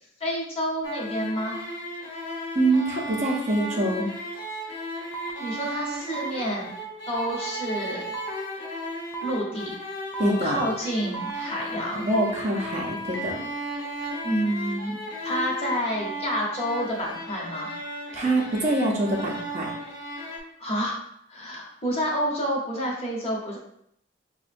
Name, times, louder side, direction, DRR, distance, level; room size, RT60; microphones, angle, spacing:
voice 1, 0.2-1.6 5.4-6.7 7.1-8.1 9.2-9.7 10.2-12.1 14.2-17.7 20.6-21.0 21.3-23.6, equal, 30° left, -3 dB, 0.9 m, -29 dB
sound 1, 0.8-20.4, equal, 55° left, 1.0 m, -35 dB
voice 2, 2.5-4.1 10.2-10.6 12.1-13.4 18.1-19.7, right 1 dB, 35° right, -2 dB, 0.6 m, -25 dB
sound 2, 5.1-5.3 6.1-6.3 7.1-7.3 8.1-8.3 9.1-9.3 10.1-10.3 11.1-11.3 12.1-12.3 13.1-13.3, right 5 dB, 10° left, 0.4 m, -34 dB
5.8 x 2.2 x 2.5 m, 0.72 s
head